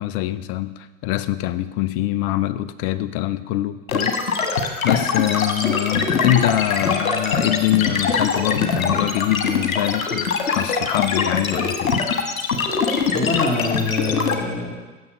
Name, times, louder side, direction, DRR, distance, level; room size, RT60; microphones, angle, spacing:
voice 1, 0.0-4.4 4.8-12.0, left 14 dB, 50° left, 13 dB, 0.8 m, -24 dB
sound 1, 3.9-14.3, left 5 dB, 90° left, 1.6 m, -22 dB
voice 2, 13.1-14.9, left 3 dB, 20° left, 1 dB, 2.4 m, -25 dB
16.0 x 7.0 x 5.5 m, 1.2 s
hypercardioid pair, 100°, 40 cm